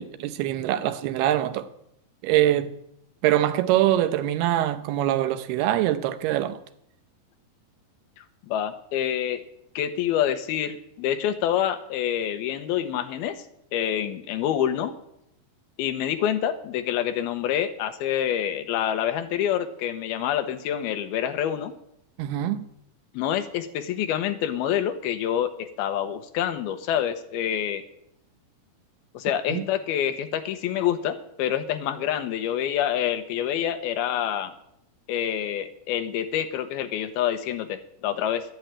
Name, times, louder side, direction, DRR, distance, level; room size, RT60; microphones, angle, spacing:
voice 1, 0.0-1.7 2.2-2.7 3.2-6.6 22.2-22.7 29.5-29.7, right 13 dB, 85° right, 2.9 m, -23 dB
voice 2, 8.5-9.4 9.8-13.4 13.7-14.9 15.8-21.7 23.1-27.8 29.1-34.5 35.1-38.4, left 10 dB, 80° left, 2.9 m, -27 dB
11.5 x 10.0 x 9.0 m
omnidirectional pair, 4.4 m